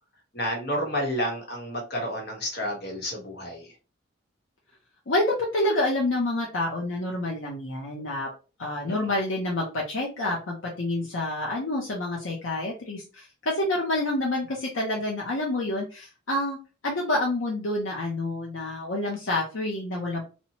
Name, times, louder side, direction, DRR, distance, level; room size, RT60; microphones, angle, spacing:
voice 1, 0.3-3.7 8.8-9.1, equal, 55° left, 1 dB, 1.0 m, -30 dB
voice 2, 5.1-8.3 8.6-16.6 16.8-20.2, left 1 dB, 70° left, -2 dB, 0.6 m, -28 dB
2.8 x 2.1 x 2.8 m, 0.33 s
head